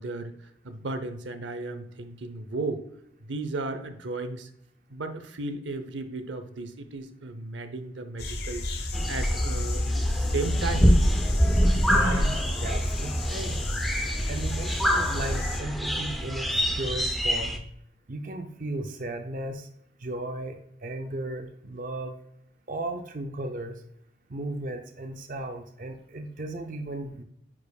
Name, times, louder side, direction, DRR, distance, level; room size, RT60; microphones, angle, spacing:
voice 1, 0.0-2.8 3.2-4.5 4.9-11.1, right 3 dB, 85° right, 9 dB, 0.7 m, -35 dB
sound 1, 8.2-15.6, left 1 dB, 55° left, 0.9 m, -30 dB
sound 2, 8.9-17.6, equal, ahead, 0.5 m, -26 dB
voice 2, 11.9-13.7 14.3-17.6 18.1-19.7 20.0-22.1 22.7-23.8 24.3-27.2, right 1 dB, 45° right, 5 dB, 0.5 m, -35 dB
9.4 x 4.9 x 2.3 m, 0.73 s
head